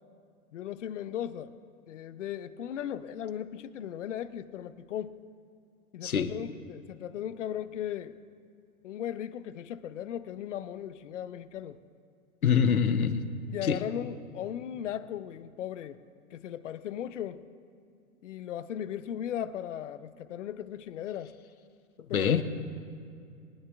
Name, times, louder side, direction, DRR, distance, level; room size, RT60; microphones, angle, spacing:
voice 1, 0.5-1.5 1.9-5.2 5.9-8.2 8.8-11.8 13.5-16.0 16.3-17.4 18.2-21.3 22.1-22.4, left 10 dB, 55° left, 14 dB, 0.7 m, -37 dB
voice 2, 12.4-13.3 13.6-13.8 22.1-22.4, left 7 dB, 75° left, 10 dB, 1.0 m, -24 dB
23.0 x 11.0 x 2.4 m, 2.4 s
figure-of-eight pair, 115°, 44 cm